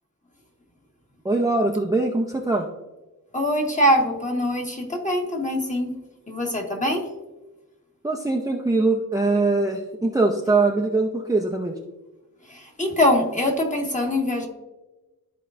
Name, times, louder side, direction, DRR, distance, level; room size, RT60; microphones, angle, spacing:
voice 1, 1.2-2.7 8.0-11.8, right 3 dB, 10° right, 0 dB, 0.7 m, -22 dB
voice 2, 3.3-5.9 6.3-7.0 12.5-14.5, left 1 dB, 20° left, 1 dB, 1.5 m, -23 dB
13.0 x 4.5 x 2.5 m, 1.1 s
wide cardioid pair, 95°, 33 cm